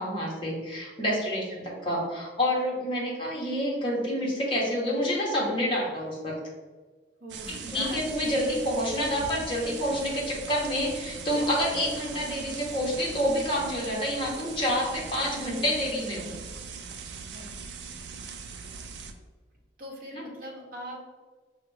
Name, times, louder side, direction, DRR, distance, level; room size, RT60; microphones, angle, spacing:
voice 1, 0.0-6.4 7.5-16.3, equal, 30° left, -4 dB, 1.1 m, -28 dB
voice 2, 1.2-1.5 7.2-8.3 17.3-17.5 19.8-21.0, equal, 50° right, -1 dB, 0.9 m, -41 dB
sound 1, 7.3-19.1, right 5 dB, 70° right, 0.4 m, -40 dB
5.7 x 2.4 x 3.3 m, 1.3 s
head